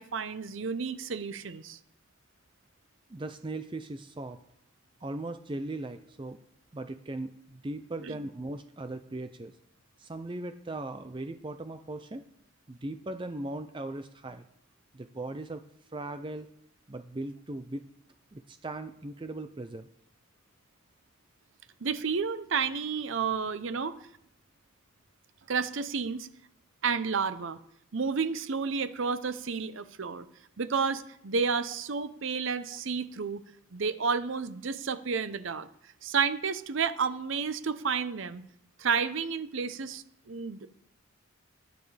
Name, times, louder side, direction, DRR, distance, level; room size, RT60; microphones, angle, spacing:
voice 1, 0.0-1.8 8.0-8.1 21.8-23.9 25.5-26.3 26.8-27.6 27.9-30.3 30.6-33.4 33.7-35.7 36.0-38.4 38.8-40.7, right 5 dB, 65° right, 13 dB, 0.7 m, -31 dB
voice 2, 3.1-4.4 5.0-6.4 6.7-9.5 10.0-12.2 12.7-14.4 14.9-15.6 15.9-16.5 16.9-17.8 18.3-19.9, right 2 dB, 25° right, 9 dB, 0.5 m, -38 dB
19.0 x 10.5 x 3.3 m, 0.72 s
head